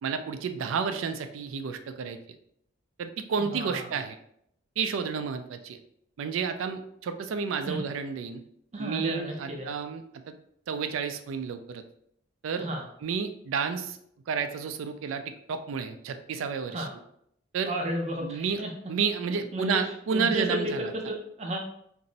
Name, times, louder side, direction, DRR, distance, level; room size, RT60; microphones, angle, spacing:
voice 1, 0.0-2.2 3.0-4.2 4.8-5.8 6.2-8.4 8.8-10.3 10.7-11.8 12.4-12.7 13.0-14.0 14.3-15.2 15.5-16.9 17.5-17.7 18.2-18.6 18.9-20.9, right 6 dB, 90° right, 9 dB, 0.3 m, -31 dB
voice 2, 3.4-3.9 7.7-7.8 8.7-9.7 12.6-12.8 16.7-16.9 17.7-18.7 19.5-21.6, right 1 dB, 35° right, 1 dB, 0.6 m, -33 dB
2.6 x 2.0 x 3.9 m, 0.70 s
head